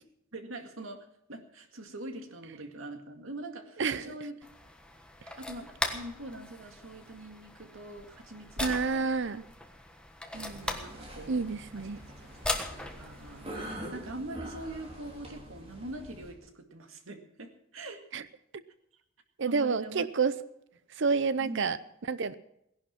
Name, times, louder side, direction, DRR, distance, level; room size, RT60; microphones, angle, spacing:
voice 1, 0.3-4.4 5.3-9.1 10.3-11.5 11.8-11.9 12.7-13.5 13.9-18.0 19.4-20.1 21.4-21.6, right 2 dB, 80° right, 5 dB, 2.0 m, -43 dB
voice 2, 3.8-4.1 8.6-9.4 11.3-12.0 18.1-18.2 19.4-20.3 21.0-21.8 22.1-22.3, right 5 dB, 65° right, 15 dB, 0.7 m, -28 dB
sound 1, 4.4-13.7, left 1 dB, 5° left, 1.3 m, -39 dB
sound 2, 10.3-16.3, right 1 dB, 30° right, 3.4 m, -45 dB
17.5 x 11.0 x 6.0 m, 0.80 s
head